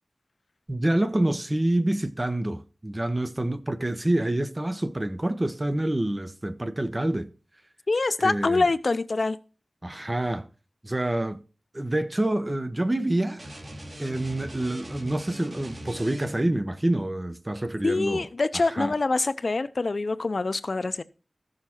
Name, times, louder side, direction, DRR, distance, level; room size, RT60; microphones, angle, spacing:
voice 1, 0.7-7.3 8.2-8.7 9.8-10.5 10.8-11.4 11.7-13.4 14.0-18.3 18.5-18.9, right 1 dB, 25° right, 1.0 m, -27 dB
voice 2, 7.9-9.4 17.8-21.0, left 3 dB, 65° left, 0.6 m, -25 dB
sound 1, 13.4-16.6, equal, 50° right, 3.0 m, -41 dB
14.5 x 6.5 x 4.4 m
wide cardioid pair, 70°, 0 cm